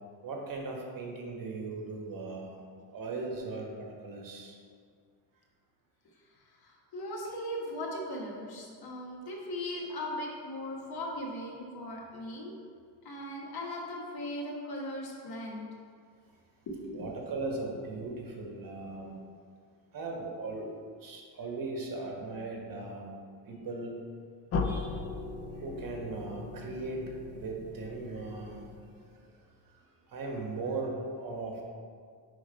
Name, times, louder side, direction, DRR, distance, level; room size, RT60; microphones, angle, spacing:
voice 1, 0.2-2.6 2.9-4.6 16.9-19.2 19.9-20.7 21.0-23.1 23.5-24.0 24.6-25.1 25.5-28.7 29.3-31.6, right 3 dB, 50° right, 0 dB, 1.2 m, -38 dB
voice 2, 6.6-12.5 13.0-15.7 16.7-17.1, left 1 dB, 60° left, -2 dB, 1.3 m, -38 dB
sound 1, 24.5-29.3, left 3 dB, 35° left, 0.4 m, -38 dB
5.0 x 3.7 x 5.1 m, 2.1 s
cardioid pair, 115°, 42 cm